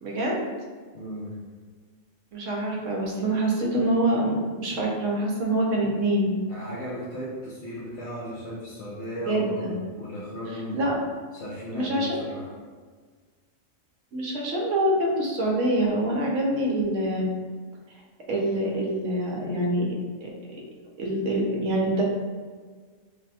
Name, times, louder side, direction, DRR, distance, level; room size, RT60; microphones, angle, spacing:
voice 1, 0.0-0.5 2.3-6.3 9.3-9.7 10.5-11.0 11.7-12.1 14.1-17.2 18.3-19.8 20.2-20.3 21.0-22.0, right 1 dB, 70° right, -1 dB, 1.1 m, -25 dB
voice 2, 0.9-1.4 6.5-10.8 11.3-12.5, equal, 65° left, -8 dB, 1.0 m, -36 dB
3.4 x 2.2 x 4.0 m, 1.5 s
omnidirectional pair, 1.4 m